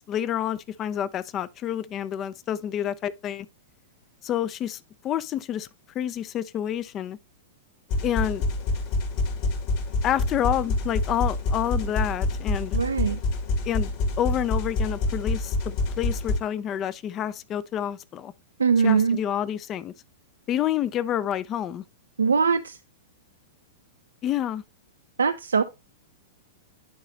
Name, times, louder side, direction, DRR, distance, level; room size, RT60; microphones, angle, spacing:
voice 1, 0.0-3.5 4.2-5.7 5.9-7.2 8.0-8.4 10.0-12.8 13.6-13.9 14.2-18.3 18.8-19.9 20.5-21.8 24.2-24.6, left 10 dB, 30° left, 0.4 m, -28 dB
sound 1, 7.9-16.4, left 2 dB, 50° left, 2.0 m, -27 dB
voice 2, 12.7-13.2 18.6-19.2 22.2-22.8 25.2-25.6, right 6 dB, 85° right, 0.4 m, -21 dB
10.0 x 4.0 x 3.1 m
hypercardioid pair, 110°, 0 cm